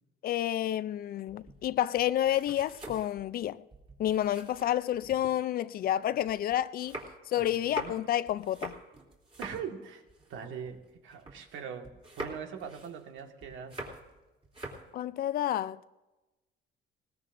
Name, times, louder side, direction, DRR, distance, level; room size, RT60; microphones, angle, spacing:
voice 1, 0.2-3.6 4.0-7.0 7.3-8.8 14.9-16.0, left 12 dB, 50° left, 0.4 m, -30 dB
sound 1, 1.3-5.3 5.8-11.6 11.8-14.2 14.4-14.9, right 2 dB, 30° right, 3.0 m, -45 dB
voice 2, 7.4-7.9 9.4-10.0 10.3-13.8, right 7 dB, 75° right, 1.7 m, -42 dB
20.5 x 19.5 x 2.6 m
cardioid pair, 160°, 20 cm